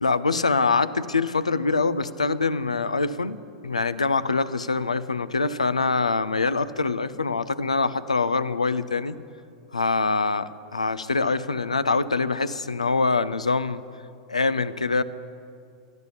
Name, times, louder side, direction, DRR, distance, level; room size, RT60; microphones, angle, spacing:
voice 1, 0.0-9.2 9.7-13.8 14.3-15.0, left 3 dB, 80° left, 15 dB, 0.5 m, -24 dB
13.0 x 12.0 x 8.2 m, 2.4 s
figure-of-eight pair, 95°, 3 cm